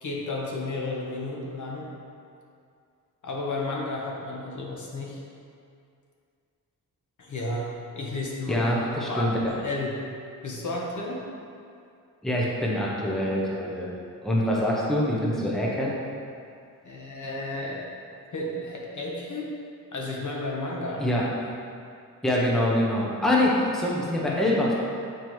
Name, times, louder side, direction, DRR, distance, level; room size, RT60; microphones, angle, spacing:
voice 1, 0.0-1.9 3.2-5.2 7.2-8.7 9.0-9.9 10.4-11.2 16.8-17.9 18.3-19.5 19.9-21.1 24.3-24.4, left 2 dB, 55° left, -3 dB, 1.1 m, -32 dB
voice 2, 8.5-9.3 12.2-13.9 14.2-15.9 21.0-21.2 22.2-24.7, left 1 dB, ahead, -4 dB, 0.8 m, -24 dB
7.2 x 4.6 x 3.1 m, 2.4 s
wide cardioid pair, 120°, 35 cm